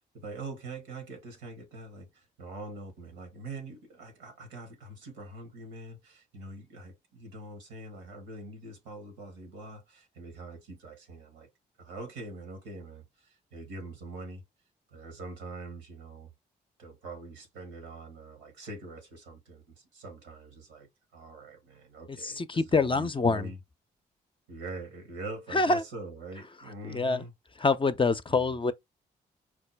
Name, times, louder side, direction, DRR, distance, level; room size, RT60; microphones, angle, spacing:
voice 1, 0.1-11.5 11.8-14.4 14.9-16.3 16.8-23.6 24.5-27.3 28.3-28.5, right 2 dB, 85° right, 1.2 m, -44 dB
voice 2, 22.2-23.5 25.5-25.8 26.9-27.2 27.6-28.7, left 3 dB, 25° left, 0.5 m, -25 dB
4.6 x 2.2 x 3.3 m
hypercardioid pair, 40°, 21 cm